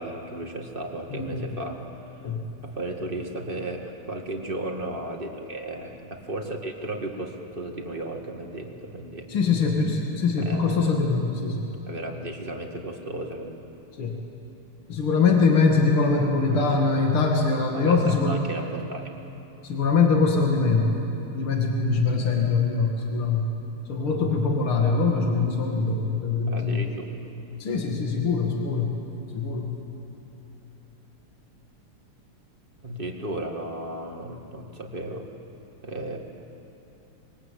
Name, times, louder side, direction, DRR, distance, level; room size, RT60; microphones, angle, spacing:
voice 1, 0.0-2.1 2.6-9.3 10.4-10.9 11.9-13.6 16.5-16.8 17.7-19.1 26.5-27.2 32.8-35.3 35.8-36.2, right 1 dB, 25° right, 2 dB, 2.1 m, -34 dB
voice 2, 1.1-1.5 2.2-2.4 9.3-11.7 14.0-14.2 14.9-18.4 19.6-20.9 21.3-23.5 23.9-26.9 27.6-28.9 29.3-29.7, left 4 dB, 75° left, 1 dB, 2.9 m, -23 dB
26.0 x 22.5 x 8.6 m, 3.0 s
omnidirectional pair, 2.4 m